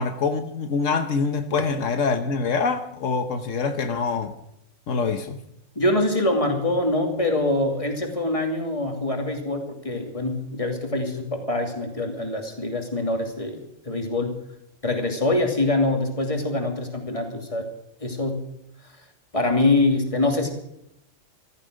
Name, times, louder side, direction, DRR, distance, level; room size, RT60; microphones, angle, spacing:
voice 1, 0.0-4.3 4.9-5.4, left 5 dB, 80° left, 1.4 m, -25 dB
voice 2, 5.7-13.6 13.8-14.3 14.8-17.7 18.0-18.4 19.3-20.5, left 2 dB, 25° left, 2.8 m, -24 dB
14.5 x 14.5 x 6.3 m
omnidirectional pair, 1.3 m